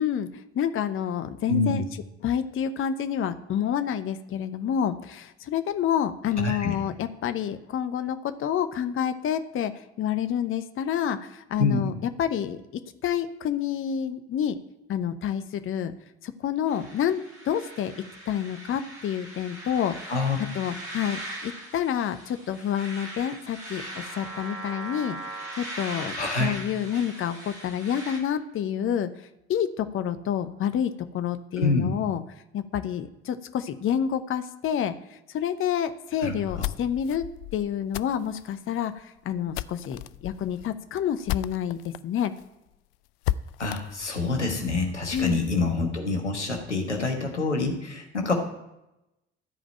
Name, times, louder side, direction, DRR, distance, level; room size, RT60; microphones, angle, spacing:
voice 1, 0.0-1.8 2.2-12.6 13.0-14.6 14.9-15.9 16.2-17.9 18.3-20.1 20.5-32.2 32.5-42.3 45.1-45.4, left 9 dB, 40° left, 10 dB, 0.9 m, -28 dB
voice 2, 1.5-1.9 6.4-6.7 11.6-11.9 20.1-20.4 26.2-26.6 31.5-31.9 36.2-36.7 43.6-48.3, left 3 dB, 85° left, 2 dB, 1.4 m, -26 dB
sound 1, 16.7-28.2, right 1 dB, 85° right, 2.5 m, -40 dB
sound 2, 36.3-42.0 42.4-42.5 42.7-42.8 43.2-45.4, left 14 dB, 60° left, 0.5 m, -35 dB
14.0 x 5.1 x 8.8 m, 0.91 s
figure-of-eight pair, 55°, 34 cm